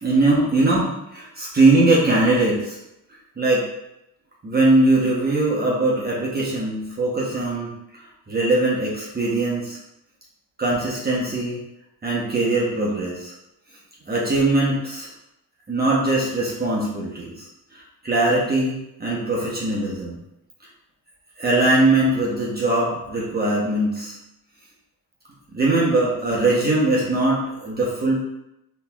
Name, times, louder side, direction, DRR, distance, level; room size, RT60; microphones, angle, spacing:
voice 1, 0.0-2.8 3.4-3.7 4.4-9.8 10.6-11.6 12.0-13.3 14.1-15.1 15.7-17.5 17.7-20.2 21.4-24.1 25.5-28.2, right 2 dB, 25° right, -5 dB, 0.9 m, -21 dB
4.1 x 3.1 x 2.3 m, 0.85 s
cardioid pair, 90°, 36 cm